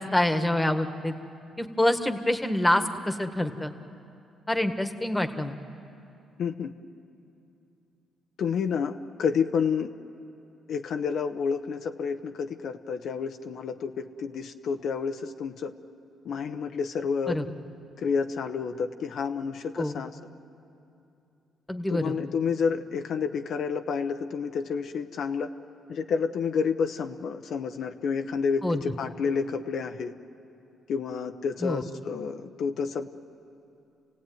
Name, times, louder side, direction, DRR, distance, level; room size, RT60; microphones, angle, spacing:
voice 1, 0.1-1.1 1.6-3.7 4.5-5.5 17.3-17.5 19.8-19.9 21.7-22.1 28.6-28.8 31.6-31.8, left 1 dB, 10° left, 8 dB, 1.5 m, -26 dB
voice 2, 6.4-6.7 8.4-9.9 10.7-15.7 16.2-17.4 18.0-20.1 21.9-25.5 25.9-30.1 30.9-33.1, left 6 dB, 65° left, 6 dB, 0.9 m, -29 dB
29.5 x 17.0 x 9.4 m, 2.7 s
cardioid pair, 90°, 0 cm